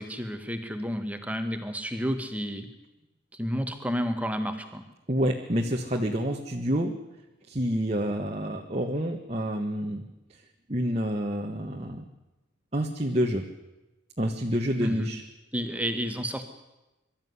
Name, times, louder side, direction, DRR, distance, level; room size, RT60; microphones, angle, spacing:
voice 1, 0.0-2.7 3.3-4.8 14.8-15.1 15.5-16.4, equal, 5° right, 7 dB, 1.7 m, -31 dB
voice 2, 5.1-7.0 7.5-10.0 10.7-12.0 12.7-13.5 14.2-15.2, equal, 30° right, 1 dB, 1.5 m, -28 dB
24.0 x 13.5 x 9.7 m, 1.0 s
head